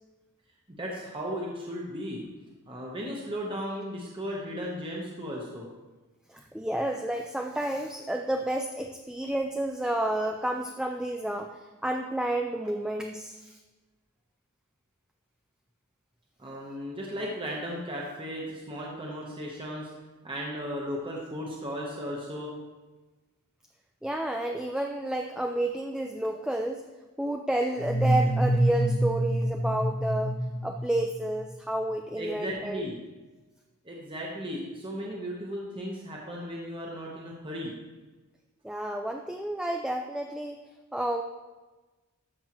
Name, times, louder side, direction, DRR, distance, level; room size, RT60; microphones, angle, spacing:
voice 1, 0.7-2.2 2.7-5.7 16.4-19.9 20.2-22.5 24.7-24.8 32.2-33.0 33.8-37.7, equal, 25° right, -3 dB, 1.0 m, -36 dB
voice 2, 6.3-13.6 24.0-26.8 27.2-30.4 30.6-32.8 38.6-40.6 40.9-41.2, right 1 dB, 5° right, 3 dB, 0.3 m, -30 dB
sound 1, 27.8-31.5, right 1 dB, 40° left, 0.6 m, -27 dB
13.0 x 6.1 x 3.0 m, 1.2 s
head